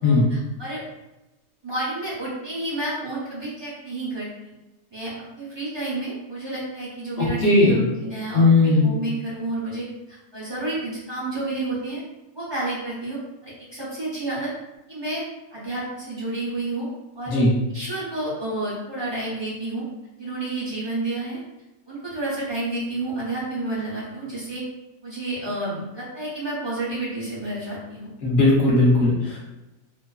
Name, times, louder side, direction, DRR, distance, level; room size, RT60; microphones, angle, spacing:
voice 1, 0.0-0.8 1.6-4.5 4.9-12.0 12.3-14.5 14.9-15.2 15.5-16.9 17.1-17.4 17.7-19.9 20.2-21.4 21.9-24.6 25.0-28.1, right 2 dB, 30° right, -9 dB, 0.4 m, -30 dB
voice 2, 7.2-7.8 8.3-8.9 17.3-17.5 28.2-29.4, left 2 dB, 55° left, -5 dB, 0.8 m, -17 dB
2.4 x 2.3 x 2.3 m, 0.99 s
omnidirectional pair, 1.5 m